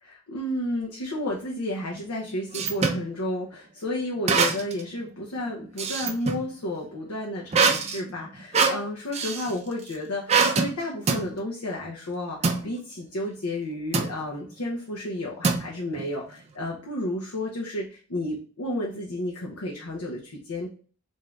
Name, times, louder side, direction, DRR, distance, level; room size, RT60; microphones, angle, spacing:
voice 1, 0.0-20.7, left 1 dB, 80° left, -2 dB, 0.8 m, -32 dB
heavy squeak, 1.9-3.0 4.3-4.9 5.2-6.5 7.5-9.5 10.3-10.7 11.1-11.3 12.4-12.6 13.9-14.2 15.4-16.0, right 4 dB, 30° right, 0.4 m, -24 dB
3.6 x 2.7 x 3.1 m, 0.40 s
head